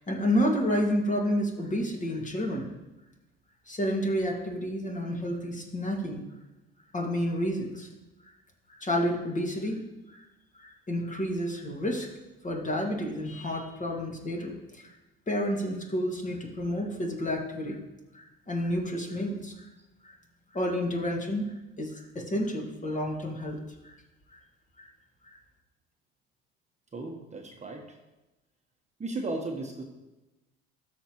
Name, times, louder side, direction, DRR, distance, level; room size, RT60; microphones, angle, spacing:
voice 1, 0.0-2.7 3.7-6.2 6.9-7.9 8.7-9.8 10.1-10.3 10.6-12.1 12.4-14.9 15.3-17.8 18.1-19.7 20.0-20.2 20.5-23.6 23.8-24.0 24.3-24.4 24.8-24.9 25.2-25.4, equal, 25° left, 0 dB, 2.2 m, -30 dB
voice 2, 26.9-28.0 29.0-29.8, right 2 dB, 25° right, 1 dB, 1.3 m, -35 dB
13.0 x 5.7 x 3.1 m, 1.0 s
hypercardioid pair, 70°, 30 cm